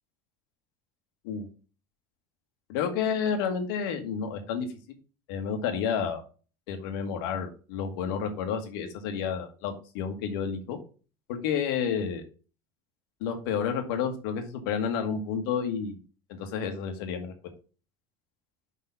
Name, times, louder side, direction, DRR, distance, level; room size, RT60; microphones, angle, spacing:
voice 1, 2.7-4.7 5.3-6.2 6.7-10.8 11.3-12.2 13.2-16.0 16.3-17.3, left 7 dB, 90° left, 6 dB, 1.4 m, -30 dB
5.3 x 4.2 x 5.5 m, 0.36 s
cardioid pair, 145°, 12 cm